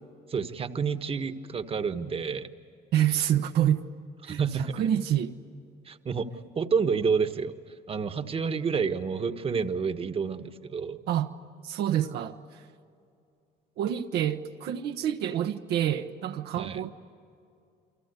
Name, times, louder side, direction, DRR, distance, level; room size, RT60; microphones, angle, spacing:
voice 1, 0.3-2.5 4.2-4.8 5.8-6.3 6.5-7.5 7.9-11.0 16.6-16.8, right 5 dB, 35° right, 1.4 m, -29 dB
voice 2, 2.9-3.8 4.2-5.3 11.1-11.3 11.6-12.6 13.8-16.9, right 10 dB, 75° right, 1.1 m, -27 dB
29.5 x 24.5 x 8.3 m
cardioid pair, 110°, 17 cm